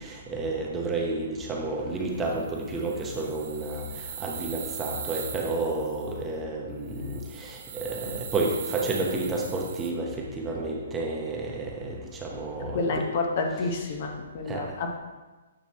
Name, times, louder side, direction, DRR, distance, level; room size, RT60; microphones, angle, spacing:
voice 1, 0.0-3.8 4.2-10.1 10.4-13.0 14.5-14.6, right 2 dB, 15° right, -1 dB, 0.8 m, -31 dB
sound 1, 2.2-6.2 6.9-9.9, right 8 dB, 45° right, 0.7 m, -40 dB
voice 2, 12.7-15.0, left 3 dB, 45° left, 3 dB, 0.8 m, -29 dB
7.7 x 3.0 x 4.1 m, 1.2 s
hypercardioid pair, 145°, 0 cm